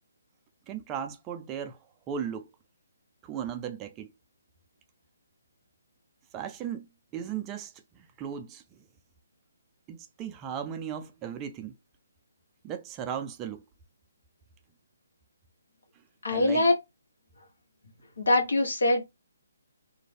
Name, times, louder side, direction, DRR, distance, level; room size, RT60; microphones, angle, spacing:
voice 1, 0.7-1.8 2.1-2.5 3.2-4.1 6.3-6.9 7.1-8.8 9.9-11.7 12.6-13.6 16.3-16.7, right 8 dB, 20° right, 0.3 m, -36 dB
voice 2, 16.2-16.7 18.2-19.0, left 2 dB, 85° left, 1.0 m, -23 dB
2.5 x 2.1 x 3.2 m
hypercardioid pair, 150°, 0 cm